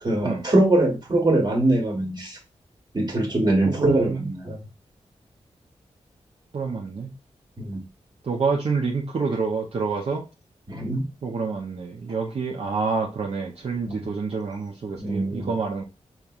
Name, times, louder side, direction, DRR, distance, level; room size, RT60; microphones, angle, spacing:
voice 1, 0.0-2.4 2.9-4.6 7.6-7.8 10.7-11.0 13.9-14.1 15.0-15.5, right 1 dB, 40° right, 1 dB, 1.4 m, -22 dB
voice 2, 3.6-4.3 6.5-7.1 8.2-10.2 11.2-15.8, right 4 dB, 60° right, -1 dB, 0.6 m, -27 dB
5.1 x 3.0 x 2.4 m, 0.30 s
wide cardioid pair, 90°, 12 cm